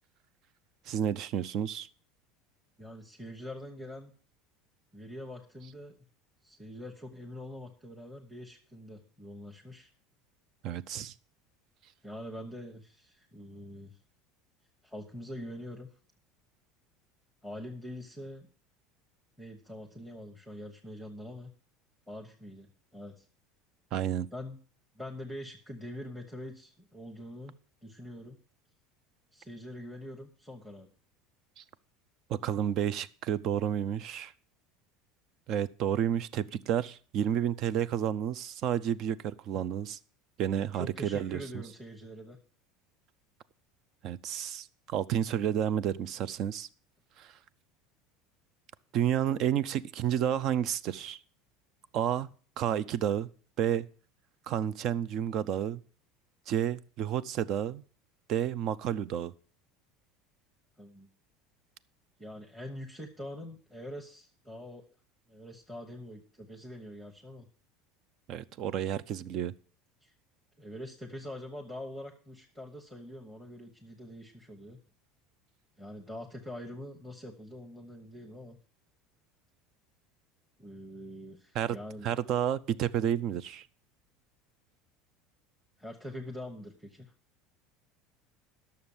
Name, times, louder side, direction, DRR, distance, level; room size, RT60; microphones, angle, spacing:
voice 1, 0.9-1.9 10.6-11.1 23.9-24.3 31.6-31.7 32.3-34.3 35.5-40.0 40.4-41.4 44.0-46.7 47.2-47.3 48.9-51.2 51.9-52.3 52.6-53.3 53.6-53.9 54.5-55.8 56.5-57.8 58.3-59.3 68.3-69.5 81.6-81.8 82.0-83.7, right 10 dB, 40° right, 0.5 m, -30 dB
voice 2, 2.8-4.1 4.9-6.0 6.4-9.9 12.0-14.0 14.8-15.9 17.4-18.5 19.4-21.5 22.1-23.2 24.3-24.6 24.9-27.5 27.8-28.4 29.3-30.9 40.5-42.4 60.8-61.1 62.2-64.8 65.3-67.5 70.0-70.1 70.6-74.8 75.8-78.6 80.6-82.1 85.8-87.1, left 1 dB, ahead, 1.1 m, -44 dB
11.5 x 6.7 x 7.1 m
cardioid pair, 160°, 0 cm